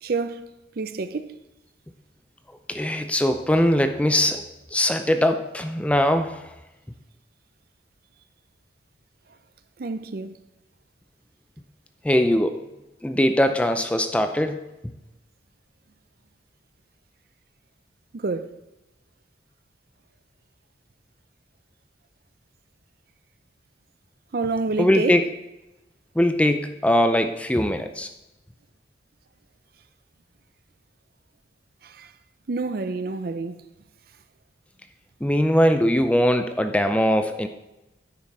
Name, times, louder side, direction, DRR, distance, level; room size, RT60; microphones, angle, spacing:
voice 1, 0.0-1.4 9.8-10.4 18.1-18.6 24.3-25.1 31.8-32.1 32.5-33.6, right 3 dB, 55° right, 0.5 m, -28 dB
voice 2, 2.7-4.4 4.7-6.5 12.0-12.7 13.0-14.9 24.8-25.2 26.1-28.1 35.2-37.5, left 1 dB, 5° left, 0.4 m, -21 dB
9.6 x 6.2 x 4.2 m
head